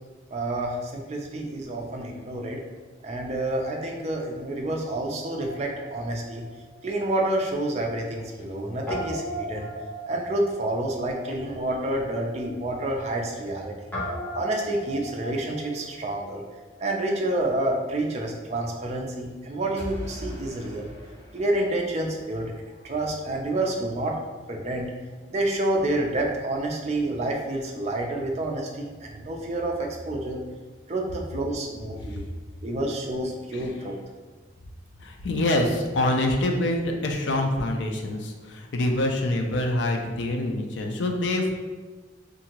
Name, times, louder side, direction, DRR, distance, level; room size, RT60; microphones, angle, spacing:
voice 1, 0.3-2.6 3.0-6.4 6.8-9.7 10.1-13.8 14.3-16.4 16.8-20.9 21.3-24.2 24.5-24.9 25.3-30.4 30.9-32.2 32.6-33.9, right 1 dB, 35° right, 1 dB, 0.4 m, -28 dB
Guitar, 5.2-7.6 7.9-8.0 8.9-16.7, equal, 10° left, 0.7 m, -38 dB
sound 1, 19.8-22.7, equal, 25° left, 1.4 m, -40 dB
voice 2, 35.0-41.5, left 1 dB, 75° left, 3 dB, 0.4 m, -26 dB
2.7 x 2.5 x 2.8 m, 1.4 s
head